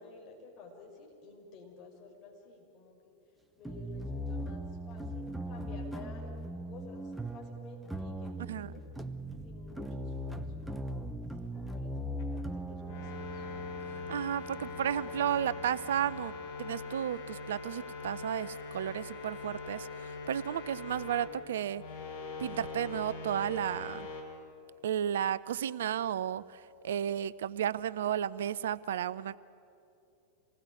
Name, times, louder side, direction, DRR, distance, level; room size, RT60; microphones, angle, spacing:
voice 1, 0.0-3.1 3.6-6.3 6.6-8.9 9.4-10.5 11.4-13.5, left 4 dB, 35° left, 0 dB, 5.5 m, -52 dB
sound 1, 3.7-16.5, right 1 dB, 5° right, 1.0 m, -40 dB
sound 2, 12.2-12.3 12.7-21.3 21.7-24.2, left 4 dB, 55° left, 4.8 m, -42 dB
voice 2, 14.1-16.3 16.6-21.8 22.4-24.1 24.8-29.4, right 10 dB, 60° right, 19 dB, 0.5 m, -33 dB
26.5 x 19.5 x 9.2 m, 2.7 s
figure-of-eight pair, 90°, 0 cm